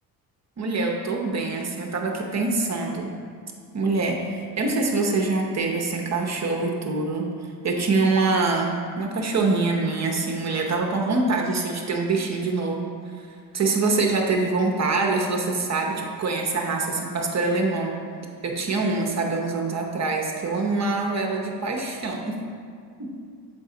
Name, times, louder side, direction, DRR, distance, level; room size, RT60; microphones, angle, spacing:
voice 1, 0.6-3.1 3.7-7.3 7.6-12.9 13.5-17.9 18.4-22.4 23.0-23.1, right 3 dB, 40° right, 1 dB, 0.8 m, -24 dB
7.7 x 4.0 x 3.8 m, 2.2 s
cardioid pair, 95°, 44 cm